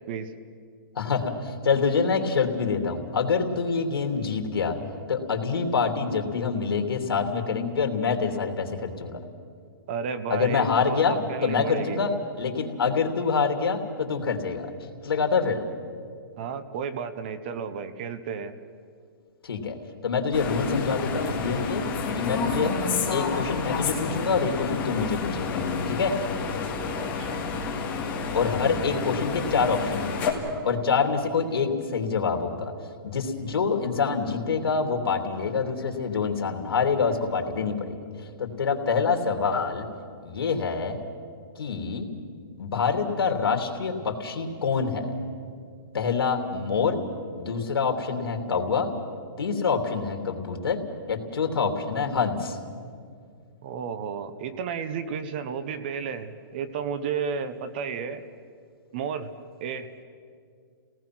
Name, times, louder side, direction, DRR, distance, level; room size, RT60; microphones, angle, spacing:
voice 1, 0.9-4.8 5.1-9.2 10.3-11.2 11.4-12.1 12.3-14.7 15.0-15.7 19.4-19.8 20.0-21.8 22.1-22.7 23.1-26.1 28.3-30.2 30.6-32.7 33.0-39.8 40.2-41.0 41.6-42.1 42.6-45.1 45.9-47.0 47.3-48.9 49.4-50.8 51.1-52.6, left 5 dB, 85° left, 4 dB, 3.1 m, -26 dB
voice 2, 9.9-12.0 16.4-18.5 26.9-27.4 53.6-58.2 58.9-59.3 59.6-59.9, right 6 dB, 25° right, 12 dB, 0.8 m, -32 dB
sound 1, 20.3-30.3, left 5 dB, 15° left, 1.9 m, -30 dB
29.0 x 18.5 x 6.1 m, 2.1 s
hypercardioid pair, 175°, 12 cm